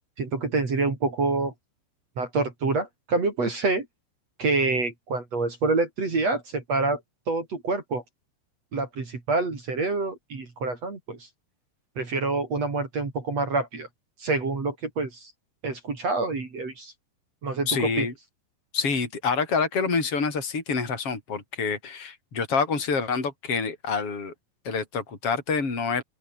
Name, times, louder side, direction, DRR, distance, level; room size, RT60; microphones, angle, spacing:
voice 1, 0.2-1.5 2.2-3.8 4.4-7.0 7.3-8.0 8.7-11.2 12.0-13.9 14.2-15.3 15.6-16.9 17.4-18.1, right 3 dB, 35° right, 4.8 m, -27 dB
voice 2, 17.7-18.1 18.7-24.3 24.7-26.0, left 5 dB, 30° left, 7.0 m, -27 dB
open air
omnidirectional pair, 5.3 m